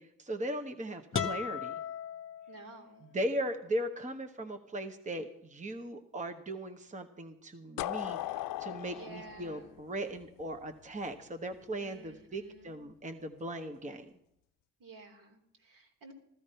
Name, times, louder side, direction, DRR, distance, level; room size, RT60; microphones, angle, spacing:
voice 1, 0.0-1.8 3.0-14.1, right 1 dB, 20° right, 6 dB, 1.2 m, -38 dB
sound 1, 1.1-3.0, left 7 dB, 40° left, 1.1 m, -37 dB
voice 2, 2.5-3.1 8.9-9.8 11.8-12.8 14.8-16.1, right 3 dB, 75° right, 1 dB, 3.4 m, -52 dB
sound 2, 7.8-10.6, left 15 dB, 75° left, 0.6 m, -38 dB
14.5 x 13.5 x 5.6 m, 0.75 s
cardioid pair, 75°, 33 cm